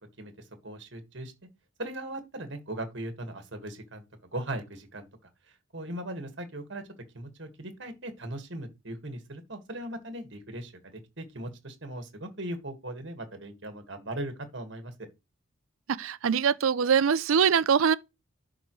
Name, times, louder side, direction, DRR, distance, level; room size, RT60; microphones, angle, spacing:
voice 1, 0.6-1.3 1.8-4.0 4.3-5.1 5.7-6.8 7.1-15.1, right 1 dB, 60° right, 1.7 m, -38 dB
voice 2, 16.0-17.9, right 7 dB, 75° right, 0.5 m, -23 dB
11.5 x 4.8 x 3.1 m
head